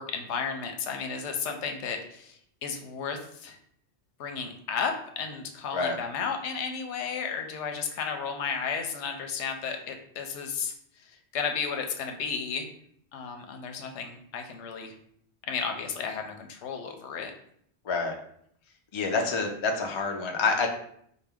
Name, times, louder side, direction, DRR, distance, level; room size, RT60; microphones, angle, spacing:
voice 1, 0.0-3.6 4.2-10.7 11.0-12.7 13.1-14.9 15.5-17.3, left 6 dB, 85° left, 4 dB, 0.9 m, -33 dB
voice 2, 17.8-18.2 18.9-20.7, left 4 dB, 45° left, 3 dB, 0.3 m, -27 dB
4.5 x 2.2 x 3.5 m, 0.67 s
omnidirectional pair, 1.2 m